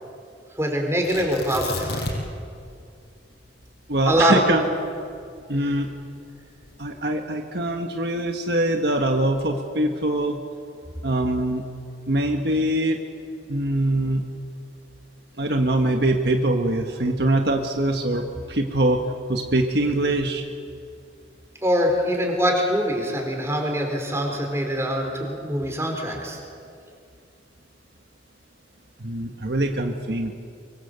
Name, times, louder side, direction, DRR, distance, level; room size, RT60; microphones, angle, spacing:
voice 1, 0.6-2.0 4.1-4.4 21.6-26.4, equal, 15° right, 2 dB, 4.4 m, -23 dB
Tearing, 1.0-2.4 2.7-2.8 3.4-5.7 6.4-6.9, left 2 dB, 65° left, 5.9 m, -32 dB
voice 2, 3.9-4.6 5.5-5.9 6.8-10.4 11.0-11.6 12.1-13.0 13.5-14.2 15.4-19.0 19.3-20.5 29.0-30.3, right 1 dB, 60° right, 3 dB, 1.4 m, -23 dB
25.0 x 23.5 x 8.1 m, 2.4 s
head